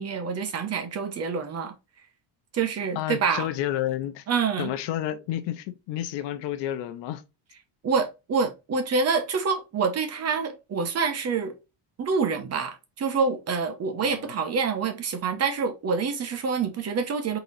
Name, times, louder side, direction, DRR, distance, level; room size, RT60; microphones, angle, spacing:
voice 1, 0.0-1.7 2.5-3.5 4.3-4.7 7.8-11.5 12.0-17.4, right 5 dB, 35° right, 0.9 m, -27 dB
voice 2, 3.0-4.2 4.6-7.2 14.0-14.3, left 12 dB, 75° left, 0.7 m, -30 dB
3.9 x 2.9 x 4.0 m
cardioid pair, 145°, 43 cm